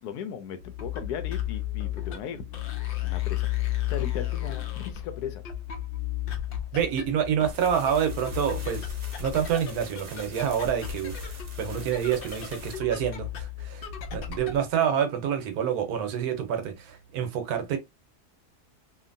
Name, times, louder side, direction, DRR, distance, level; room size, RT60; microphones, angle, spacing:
voice 1, 0.0-2.4 3.0-3.5 3.9-5.4, left 8 dB, 85° left, 1.1 m, -37 dB
sound 1, 0.6-14.7, left 12 dB, 60° left, 0.6 m, -34 dB
voice 2, 6.7-8.9 9.2-11.1 11.6-13.9 14.1-17.8, right 8 dB, 75° right, 1.2 m, -27 dB
sound 2, 7.0-12.8, right 3 dB, 40° right, 0.6 m, -47 dB
2.8 x 2.5 x 2.5 m
omnidirectional pair, 1.7 m